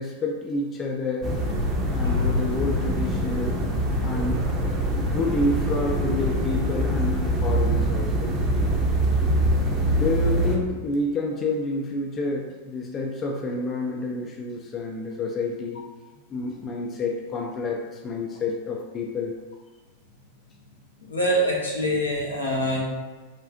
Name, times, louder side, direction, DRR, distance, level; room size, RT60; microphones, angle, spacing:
voice 1, 0.0-1.3 1.9-3.6 4.0-4.4 4.9-8.3 10.0-15.9 16.3-19.3, left 2 dB, 25° left, 1 dB, 0.3 m, -29 dB
sound 1, 1.2-10.6, right 1 dB, 25° right, 0.5 m, -24 dB
voice 2, 2.0-2.3 18.3-18.4 21.1-22.8, equal, 80° left, -4 dB, 0.8 m, -24 dB
3.7 x 2.3 x 2.5 m, 1.3 s
figure-of-eight pair, 90°, 0 cm